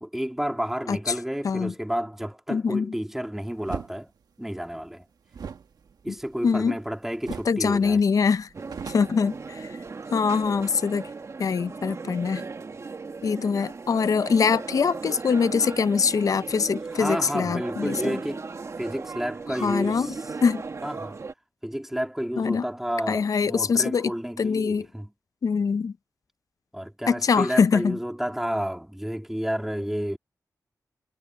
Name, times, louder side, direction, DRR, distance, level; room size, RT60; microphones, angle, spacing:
voice 1, 0.0-4.1 4.4-5.0 6.0-8.0 16.9-18.5 18.8-20.2 20.8-21.2 21.6-25.1 26.7-30.2, equal, 5° right, 2.4 m, -31 dB
voice 2, 2.5-2.9 6.4-6.8 7.5-8.5 8.9-9.8 10.1-11.1 11.4-12.4 13.2-18.2 19.5-20.1 20.4-20.6 22.4-22.7 23.1-24.9 25.4-25.9 27.1-28.0, left 5 dB, 60° left, 0.5 m, -23 dB
sound 1, 3.6-3.9 5.3-6.9 7.2-7.6 7.9-8.0 8.4-9.9, right 6 dB, 85° right, 1.5 m, -39 dB
sound 2, 8.5-21.3, right 4 dB, 50° right, 1.7 m, -37 dB
wide cardioid pair, 110°, 7 cm